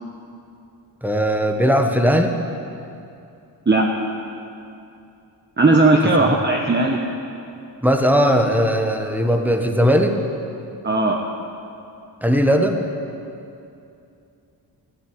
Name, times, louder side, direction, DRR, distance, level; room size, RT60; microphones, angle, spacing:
voice 1, 1.0-2.3 6.0-6.4 7.8-10.2 12.2-12.8, equal, 5° right, 4 dB, 1.5 m, -18 dB
voice 2, 5.6-7.0 10.8-11.2, right 2 dB, 25° right, 0 dB, 1.3 m, -16 dB
13.0 x 8.8 x 9.2 m, 2.7 s
cardioid pair, 65°, 46 cm